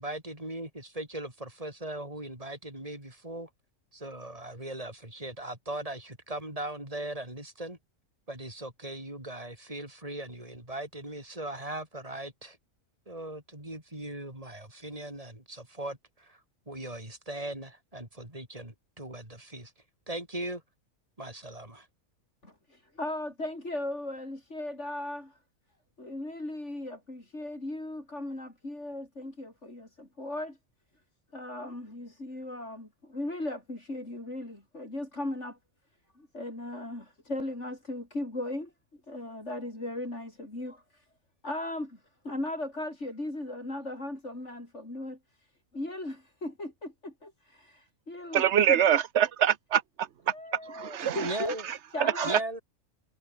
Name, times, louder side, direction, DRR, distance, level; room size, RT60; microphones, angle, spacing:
voice 1, 0.0-3.5 3.9-7.8 8.3-12.6 13.1-16.4 16.7-19.7 20.1-20.6 21.2-21.9 51.2-51.6 52.2-52.6, right 1 dB, 25° right, 6.3 m, -39 dB
voice 2, 22.4-25.4 26.0-30.6 31.3-35.6 36.1-38.7 39.1-41.1 41.4-45.5 45.7-48.8 50.3-51.6 51.9-52.4, left 1 dB, 60° left, 6.8 m, -37 dB
voice 3, 48.3-49.8 50.7-51.1 52.2-52.4, right 9 dB, 60° right, 1.1 m, -24 dB
omnidirectional pair, 1.4 m